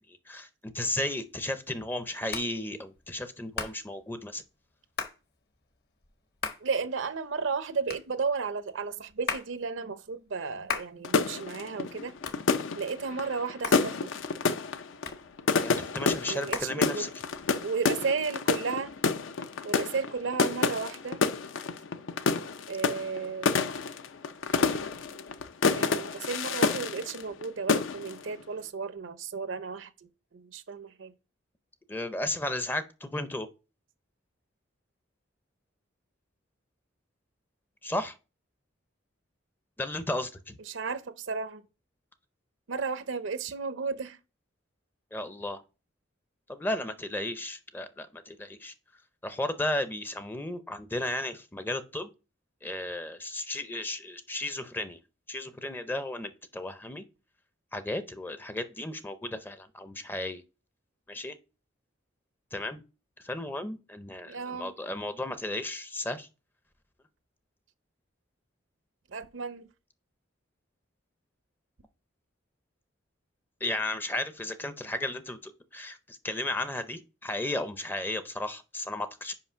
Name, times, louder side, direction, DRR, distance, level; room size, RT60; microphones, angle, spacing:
voice 1, 0.3-4.4 15.6-17.1 31.9-33.5 37.8-38.1 39.8-40.5 45.1-45.6 46.5-48.7 49.2-52.1 52.6-55.0 55.3-57.0 57.7-60.4 61.1-61.4 62.5-62.8 63.2-66.3 73.6-79.3, left 1 dB, 10° left, 0.5 m, -34 dB
Hands, 0.8-17.5, left 5 dB, 55° left, 1.0 m, -41 dB
voice 2, 6.6-12.2 12.7-14.1 16.3-17.1 17.6-18.9 19.6-21.2 22.7-23.5 25.7-31.1 40.7-41.6 42.7-44.2 64.2-64.7 69.1-69.7, right 5 dB, 70° right, 0.6 m, -33 dB
sound 1, 11.0-27.4 27.7-28.2, left 4 dB, 70° left, 0.5 m, -29 dB
5.7 x 5.0 x 5.5 m
head